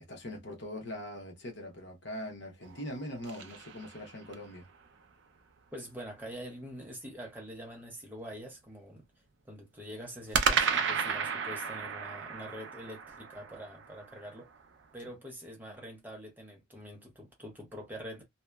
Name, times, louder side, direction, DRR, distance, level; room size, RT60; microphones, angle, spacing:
voice 1, 0.1-4.7, left 1 dB, 55° left, 0.8 m, -42 dB
sound 1, 2.6-4.5 10.3-14.6, right 6 dB, 60° right, 0.4 m, -33 dB
voice 2, 5.7-9.0 9.4-14.5 14.9-18.2, equal, 10° right, 0.6 m, -45 dB
2.8 x 2.1 x 2.2 m
head